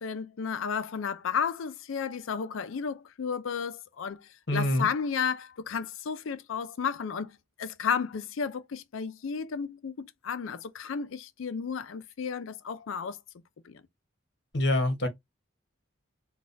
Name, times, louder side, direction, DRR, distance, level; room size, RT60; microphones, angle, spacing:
voice 1, 0.0-13.2 13.6-13.8, left 6 dB, 85° left, 0.4 m, -33 dB
voice 2, 4.5-4.9 14.5-15.1, left 1 dB, 60° left, 1.1 m, -25 dB
4.0 x 2.3 x 2.5 m
head